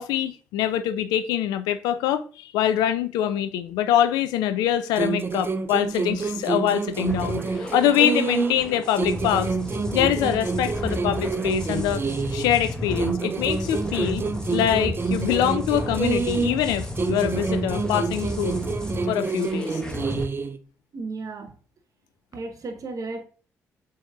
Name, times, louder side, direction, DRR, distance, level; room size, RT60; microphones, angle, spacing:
voice 1, 0.0-9.6 9.9-12.1 12.3-14.3 14.5-18.6 19.1-19.8, left 10 dB, 75° left, 0.3 m, -24 dB
sound 1, 5.0-8.7 9.0-12.6 13.0-16.7 17.0-20.6, right 4 dB, 35° right, 0.4 m, -28 dB
sound 2, 6.9-20.2, left 1 dB, 10° left, 1.1 m, -33 dB
voice 2, 20.9-21.5 22.3-23.3, right 3 dB, 55° right, 0.8 m, -34 dB
7.0 x 2.8 x 2.3 m
hypercardioid pair, 45°, 7 cm